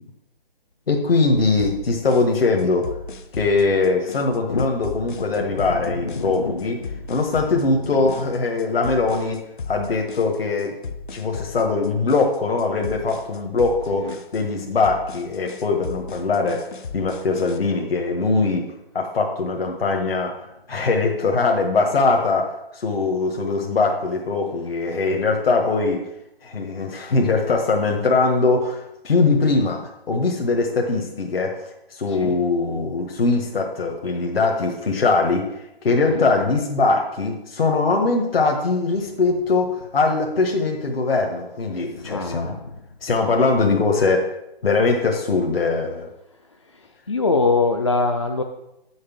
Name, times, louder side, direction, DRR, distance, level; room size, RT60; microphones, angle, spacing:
voice 1, 0.9-2.9 3.3-6.8 7.1-10.7 11.1-16.7 16.9-18.6 18.9-20.4 20.7-26.0 26.4-31.6 31.9-35.4 35.8-42.5 43.0-44.3 44.6-46.1, left 3 dB, 70° left, 2 dB, 1.6 m, -21 dB
sound 1, 1.6-17.6, left 4 dB, 55° left, 0.9 m, -36 dB
voice 2, 4.5-5.0 5.4-7.0 7.5-8.0 13.9-14.1 32.1-32.4 36.1-36.2 41.9-42.7 46.7-48.4, left 3 dB, 30° left, 3 dB, 0.4 m, -25 dB
7.0 x 6.5 x 7.3 m, 0.89 s
hypercardioid pair, 165°, 30 cm